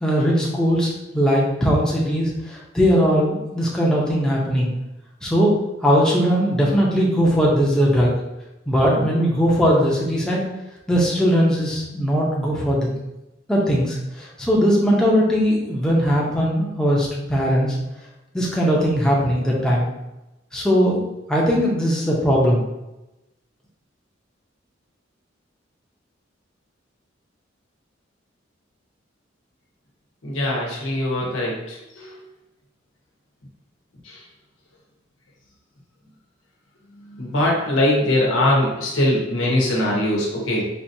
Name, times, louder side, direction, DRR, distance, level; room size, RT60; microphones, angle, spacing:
voice 1, 0.0-4.7 5.2-5.5 5.8-8.1 8.7-10.4 10.9-12.9 13.5-17.8 18.3-19.9 20.5-21.0 21.3-22.6, equal, 5° left, -5 dB, 0.7 m, -19 dB
voice 2, 30.2-32.1 34.1-34.2 37.2-40.6, left 1 dB, 90° left, -3 dB, 1.1 m, -21 dB
4.3 x 2.7 x 2.7 m, 0.96 s
head